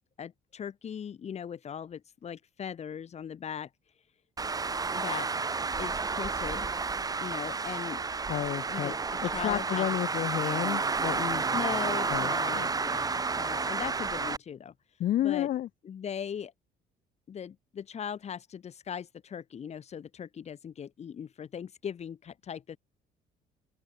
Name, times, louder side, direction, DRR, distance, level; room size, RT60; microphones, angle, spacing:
voice 1, 0.2-3.7 4.9-5.3 5.8-6.7 7.2-8.0 8.7-9.0 9.3-9.9 11.5-14.7 15.2-15.5 15.8-16.5 17.3-22.8, left 8 dB, 40° left, 1.5 m, -39 dB
Traffic noise roadway noise, 4.4-14.4, right 4 dB, 20° right, 1.3 m, -31 dB
voice 2, 8.3-8.9 9.2-11.5 12.1-12.7 15.0-15.7, left 12 dB, 55° left, 0.7 m, -31 dB
open air
cardioid pair, 110°, 17 cm